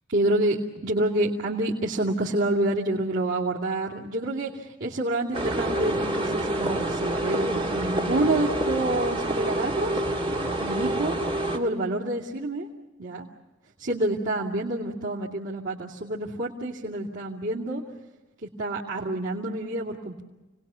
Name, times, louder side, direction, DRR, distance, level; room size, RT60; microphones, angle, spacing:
voice 1, 0.1-10.0 10.6-11.2 11.5-12.7 13.0-13.3 13.8-17.8 18.6-20.2, right 1 dB, 85° right, -7 dB, 2.6 m, -28 dB
sound 1, 5.3-11.6, right 1 dB, 30° right, 2.4 m, -27 dB
29.5 x 20.0 x 7.0 m, 1.1 s
head